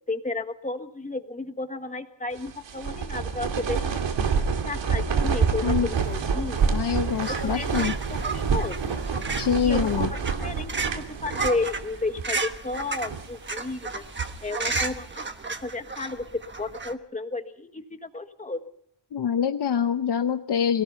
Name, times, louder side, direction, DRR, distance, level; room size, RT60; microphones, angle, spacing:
voice 1, 0.1-3.8 4.2-4.3 4.6-6.7 7.3-9.0 9.6-10.1 10.4-14.0 14.4-15.3 15.6-18.6, left 3 dB, 15° left, 7 dB, 1.6 m, -33 dB
sound 1, 2.4-11.9 12.2-12.3 12.9-13.4 13.9-15.0, right 5 dB, 70° right, 2.6 m, -28 dB
sound 2, 5.9-10.3, right 4 dB, 55° right, 4.5 m, -38 dB
voice 2, 6.7-7.9 9.4-10.1 19.1-20.8, left 8 dB, 60° left, 7 dB, 0.9 m, -25 dB
sound 3, 7.2-16.9, right 4 dB, 25° right, 1.3 m, -33 dB
26.5 x 18.0 x 5.8 m, 0.66 s
wide cardioid pair, 175°, 45 cm